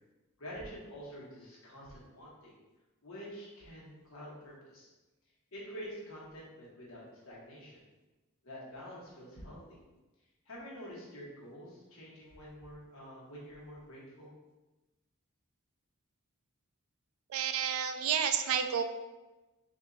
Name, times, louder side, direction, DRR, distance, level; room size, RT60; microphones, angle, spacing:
voice 1, 0.4-2.6 3.0-4.9 5.5-7.8 8.4-9.8 10.4-14.3, equal, 65° left, -6 dB, 1.4 m, -47 dB
voice 2, 17.3-18.8, right 8 dB, 65° right, 8 dB, 0.3 m, -30 dB
3.6 x 2.7 x 3.9 m, 1.1 s
head